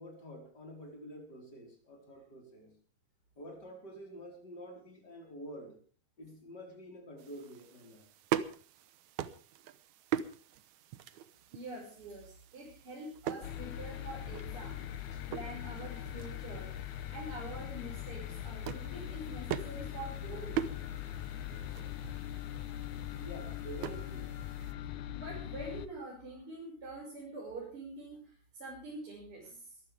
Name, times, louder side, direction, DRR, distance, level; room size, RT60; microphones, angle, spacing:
voice 1, 0.0-2.8 3.4-5.8 6.2-8.0 23.1-24.4, equal, 25° left, 1 dB, 4.9 m, -48 dB
sound 1, 7.2-24.8, right 10 dB, 80° right, 1.7 m, -42 dB
voice 2, 11.5-16.7 17.1-20.5 22.3-22.4 23.1-23.2 25.1-29.8, right 2 dB, 30° right, -5 dB, 6.5 m, -45 dB
sound 2, 13.4-25.9, left 11 dB, 75° left, 1.8 m, -41 dB
22.5 x 15.5 x 3.5 m, 0.39 s
omnidirectional pair, 4.6 m